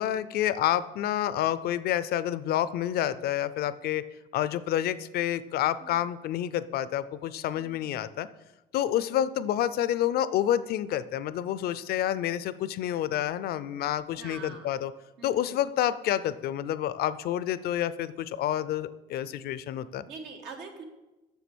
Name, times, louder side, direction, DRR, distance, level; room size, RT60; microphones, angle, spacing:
voice 1, 0.0-4.0 4.3-8.3 8.7-14.9 15.2-20.1, left 11 dB, 65° left, 15 dB, 0.5 m, -28 dB
voice 2, 5.8-6.1 7.5-8.0 14.2-14.7 15.2-15.6 20.1-20.8, right 4 dB, 80° right, 3 dB, 1.6 m, -44 dB
7.0 x 6.8 x 6.1 m, 1.1 s
cardioid pair, 110°, 17 cm